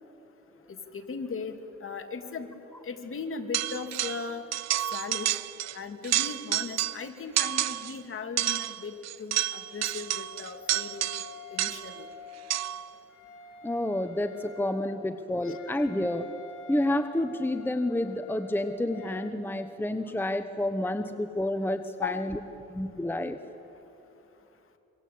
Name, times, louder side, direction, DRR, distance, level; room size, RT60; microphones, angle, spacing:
voice 1, 0.7-1.5 1.8-2.5 2.8-4.4 4.9-5.4 5.7-11.1 11.5-12.1 15.4-15.6 22.0-22.2, left 5 dB, 45° left, 5 dB, 2.7 m, -37 dB
sound 1, 3.5-4.3 4.5-5.8 6.0-7.1 7.4-8.0 8.4-12.0 12.5-12.9, right 13 dB, 60° right, 0.6 m, -30 dB
Wind instrument woodwind instrument, 9.3-19.4, left 3 dB, 75° left, 4.0 m, -48 dB
voice 2, 13.6-16.3 16.7-22.4 22.7-23.4, left 1 dB, 5° left, 8 dB, 1.1 m, -29 dB
26.5 x 24.5 x 8.6 m, 3.0 s
cardioid pair, 90°, 30 cm